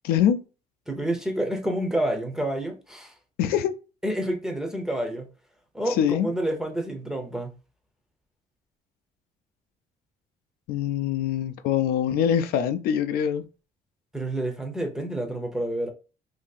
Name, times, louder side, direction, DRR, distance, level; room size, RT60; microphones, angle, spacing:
voice 1, 0.0-0.4 3.4-3.7 5.9-6.3 10.7-13.4, left 9 dB, 85° left, 0.4 m, -24 dB
voice 2, 0.9-3.1 4.0-5.3 5.7-7.5 14.1-15.9, right 1 dB, 5° right, 0.5 m, -28 dB
2.7 x 2.7 x 3.9 m
cardioid pair, 160°, 15 cm